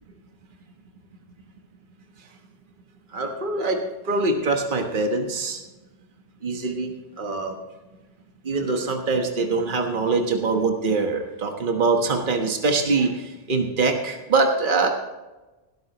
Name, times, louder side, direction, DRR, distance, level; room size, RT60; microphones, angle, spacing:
voice 1, 3.1-3.8 4.0-5.6 6.4-7.6 8.4-14.9, right 3 dB, 50° right, 3 dB, 1.5 m, -23 dB
18.0 x 12.5 x 3.0 m, 1.1 s
omnidirectional pair, 1.1 m